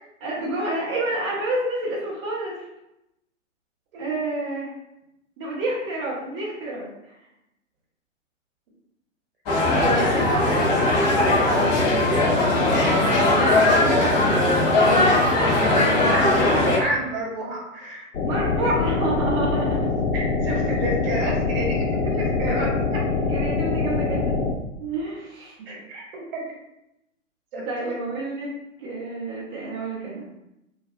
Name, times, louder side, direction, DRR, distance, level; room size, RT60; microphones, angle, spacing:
voice 1, 0.2-2.6 4.0-4.7 5.4-7.1 13.3-14.3 18.3-19.9 23.3-24.4 24.8-25.7 27.6-28.5 28.8-30.2, right 2 dB, 20° right, -8 dB, 0.4 m, -29 dB
sound 1, 9.5-16.8, left 2 dB, 30° left, 0.6 m, -19 dB
voice 2, 9.7-12.7 13.5-13.6 14.9-15.3 15.7-18.0 18.6-18.8 20.1-23.0 25.7-26.4 27.5-27.9, right 1 dB, 45° right, -2 dB, 0.9 m, -30 dB
sound 2, 18.1-24.5, left 4 dB, 85° left, 0.5 m, -24 dB
2.3 x 2.2 x 2.6 m, 0.87 s
figure-of-eight pair, 115°, 39 cm